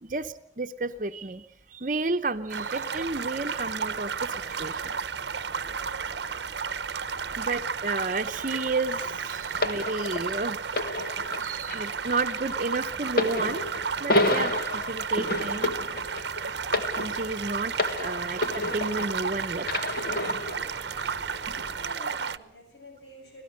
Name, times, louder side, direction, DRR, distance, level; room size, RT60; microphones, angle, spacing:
voice 1, 0.0-1.5 1.7-4.8 7.3-10.6 11.4-13.6 14.0-15.7 17.0-19.7, right 3 dB, 45° right, 9 dB, 0.8 m, -32 dB
sound 1, 2.5-22.4, right 6 dB, 80° right, 0.8 m, -33 dB
sound 2, 2.9-21.9, equal, 20° left, 4.9 m, -50 dB
sound 3, 9.6-19.3 19.6-20.7 21.5-21.6, left 2 dB, 55° left, 1.6 m, -30 dB
voice 2, 21.8-23.4, equal, 85° left, 3 dB, 8.0 m, -48 dB
26.0 x 17.5 x 6.5 m, 0.68 s
head